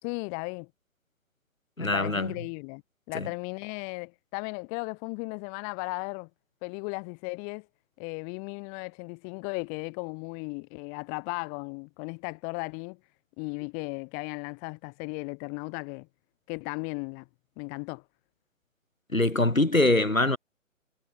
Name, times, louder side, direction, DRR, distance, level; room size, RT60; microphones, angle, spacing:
voice 1, 0.0-0.7 1.8-2.8 3.1-6.3 6.6-7.7 8.0-13.0 13.4-16.1 16.5-17.3 17.6-18.0, left 40 dB or more, 20° left, 2.9 m, -36 dB
voice 2, 1.8-2.3 3.1-3.3 19.1-20.4, left 2 dB, 85° left, 3.0 m, -23 dB
figure-of-eight pair, 135°, 39 cm